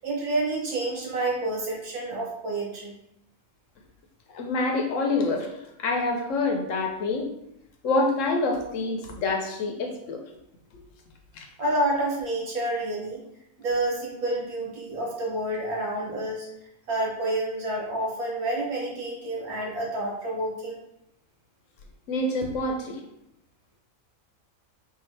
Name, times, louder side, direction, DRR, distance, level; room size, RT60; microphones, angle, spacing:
voice 1, 0.0-2.9 11.6-13.2 13.6-16.5 16.9-20.8, right 1 dB, 85° right, -3 dB, 1.6 m, -29 dB
voice 2, 4.3-5.5 5.8-7.3 7.8-10.2 11.4-11.5 22.1-23.0, left 2 dB, 70° left, 3 dB, 0.9 m, -26 dB
4.2 x 2.8 x 3.2 m, 0.80 s
omnidirectional pair, 1.5 m